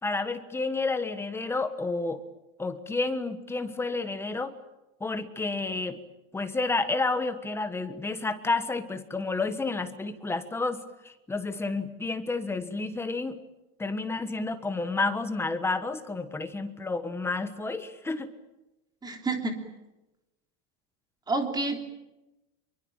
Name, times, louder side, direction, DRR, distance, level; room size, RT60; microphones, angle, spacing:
voice 1, 0.0-2.2 2.6-4.5 5.0-6.0 6.3-13.4 13.8-18.3, left 3 dB, 5° left, 9 dB, 1.4 m, -30 dB
voice 2, 19.0-19.7 21.3-21.8, right 3 dB, 10° right, 4 dB, 3.4 m, -29 dB
26.5 x 23.5 x 8.9 m, 0.98 s
supercardioid pair, 175°, 38 cm